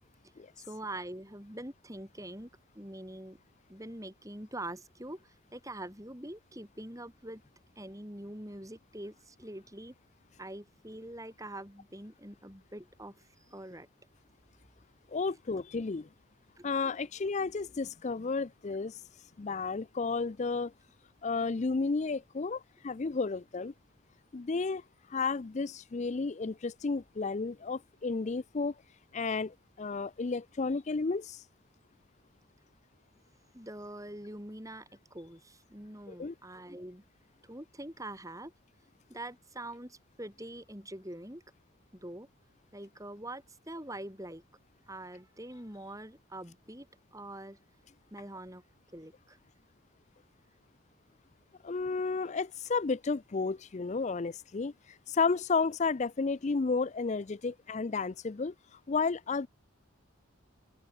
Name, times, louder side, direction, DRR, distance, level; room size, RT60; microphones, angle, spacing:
voice 1, 0.6-2.5 2.8-3.4 3.7-7.4 7.8-9.9 10.4-13.9 16.6-16.7 33.5-37.0 37.4-38.5 39.1-41.4 42.0-42.3 42.7-44.4 44.9-46.9 47.1-47.6 48.1-48.6 48.9-49.4, right 1 dB, 15° right, 7.0 m, -44 dB
voice 2, 15.1-16.1 16.6-19.0 19.4-20.7 21.2-23.7 24.3-24.8 25.1-28.7 29.1-31.4 36.1-36.3 51.6-58.5 58.9-59.5, left 4 dB, 35° left, 0.4 m, -32 dB
open air
head